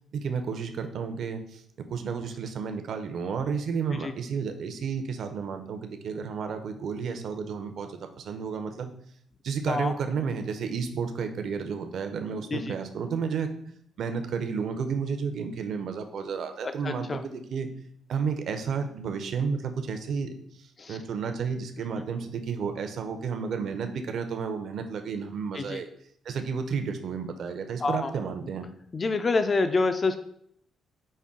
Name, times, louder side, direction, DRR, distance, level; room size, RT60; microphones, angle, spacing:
voice 1, 0.1-8.9 9.4-13.5 14.0-17.7 18.1-25.9 26.2-28.7, right 6 dB, 65° right, 7 dB, 0.5 m, -32 dB
voice 2, 16.8-17.2 20.8-21.0 25.5-25.8 27.8-28.1 28.9-30.2, left 3 dB, 35° left, 9 dB, 0.3 m, -26 dB
5.2 x 2.2 x 3.6 m, 0.69 s
cardioid pair, 90°, 0 cm